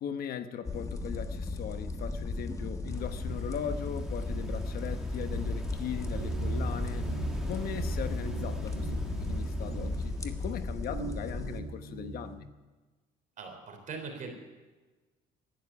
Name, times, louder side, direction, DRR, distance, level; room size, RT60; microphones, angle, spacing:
voice 1, 0.0-7.1 7.4-12.5, left 8 dB, 65° left, 10 dB, 1.1 m, -39 dB
sound 1, 0.6-11.6, left 3 dB, 20° left, 1.4 m, -36 dB
sound 2, 2.9-10.7, equal, 5° right, 2.3 m, -40 dB
sound 3, 6.1-12.4, right 3 dB, 75° right, 2.7 m, -38 dB
voice 2, 13.4-14.3, right 4 dB, 50° right, 4 dB, 3.6 m, -41 dB
12.0 x 10.5 x 9.7 m, 1.2 s
cardioid pair, 110°, 17 cm